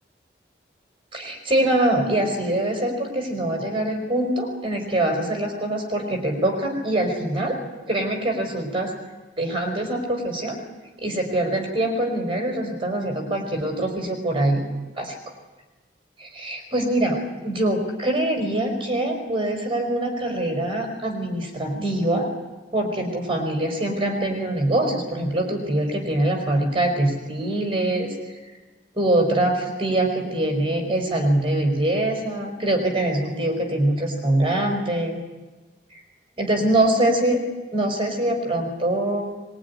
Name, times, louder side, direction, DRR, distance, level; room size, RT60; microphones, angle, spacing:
voice 1, 1.1-7.6 7.9-8.9 9.4-10.6 11.0-14.6 15.0-15.1 16.2-17.2 17.4-22.3 22.7-28.1 28.9-35.2 35.9-36.0 36.4-37.4 37.7-39.3, right 1 dB, 30° right, 3 dB, 5.1 m, -23 dB
23.0 x 22.0 x 9.8 m, 1.2 s
head